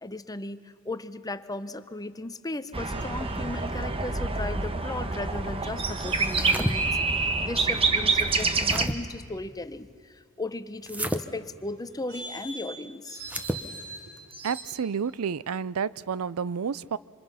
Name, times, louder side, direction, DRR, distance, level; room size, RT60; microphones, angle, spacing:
voice 1, 0.0-6.8 7.4-9.9 10.4-13.2, left 2 dB, 15° left, 13 dB, 0.7 m, -36 dB
sound 1, 2.7-8.9, right 3 dB, 25° right, 1.2 m, -27 dB
sound 2, 2.8-3.7 5.8-7.0 7.6-8.3 11.9-14.6, right 3 dB, 60° right, 4.4 m, -42 dB
sound 3, 6.2-6.7 8.2-9.0 10.8-11.2 13.2-13.6, right 1 dB, 5° right, 0.9 m, -31 dB
voice 2, 14.4-17.0, right 6 dB, 85° right, 19 dB, 0.5 m, -30 dB
26.5 x 26.0 x 5.7 m, 2.2 s
head